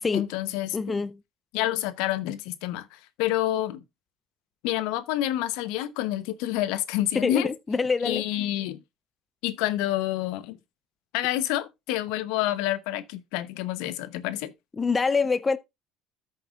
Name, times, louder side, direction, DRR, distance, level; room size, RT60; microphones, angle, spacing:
voice 1, 0.1-1.0 1.5-3.8 4.6-7.5 8.0-8.8 9.4-10.6 11.1-14.5, left 14 dB, 70° left, 0.9 m, -28 dB
voice 2, 0.7-1.2 7.1-8.2 14.8-15.6, left 4 dB, 25° left, 0.6 m, -25 dB
13.5 x 6.5 x 2.5 m
hypercardioid pair, 70°, 0 cm